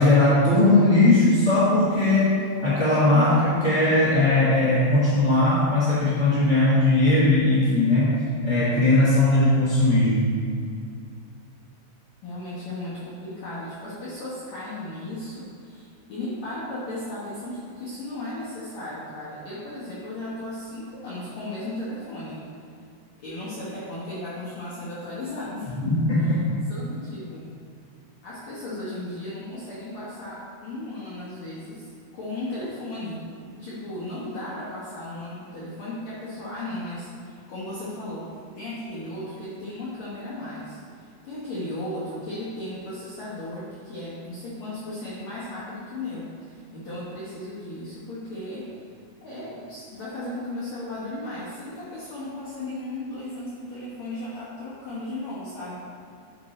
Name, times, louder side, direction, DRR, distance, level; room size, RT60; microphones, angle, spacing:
voice 1, 0.0-8.2 8.4-10.3 25.8-26.4, left 2 dB, 35° right, -10 dB, 1.6 m, -19 dB
voice 2, 12.2-22.5 23.2-25.8 26.7-27.5 28.2-33.3 33.5-48.8 49.2-55.7, left 1 dB, 60° left, -10 dB, 1.9 m, -35 dB
8.6 x 5.4 x 4.2 m, 2.4 s
omnidirectional pair, 4.7 m